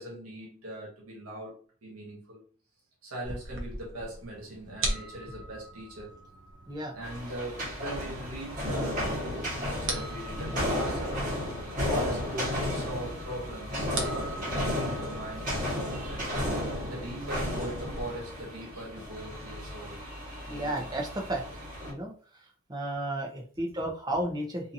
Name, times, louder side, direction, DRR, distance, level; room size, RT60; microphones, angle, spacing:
voice 1, 0.0-2.4 3.0-6.2 6.9-11.2 11.9-16.4 16.9-20.0 20.5-20.9, right 1 dB, 85° right, 1.0 m, -40 dB
sound 1, 3.2-18.0, right 2 dB, 60° right, 0.6 m, -41 dB
sound 2, 7.0-21.9, left 1 dB, 40° right, 1.3 m, -33 dB
voice 2, 20.5-21.4 21.9-22.1 22.7-24.7, right 1 dB, 20° right, 0.6 m, -33 dB
2.7 x 2.6 x 2.6 m
head